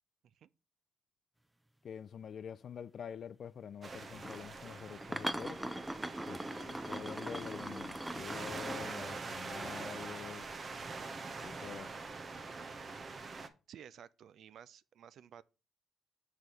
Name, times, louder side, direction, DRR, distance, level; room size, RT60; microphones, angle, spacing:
voice 1, 1.8-5.6 6.3-10.5 11.4-12.0, left 8 dB, 55° left, 0.3 m, -46 dB
sound 1, 3.8-13.5, right 4 dB, 40° right, 0.9 m, -44 dB
sound 2, 4.1-4.4 5.0-9.3 12.3-12.6, right 1 dB, 10° right, 0.5 m, -41 dB
voice 2, 13.7-15.4, right 9 dB, 70° right, 0.4 m, -54 dB
6.6 x 4.6 x 5.4 m
cardioid pair, 90°, 0 cm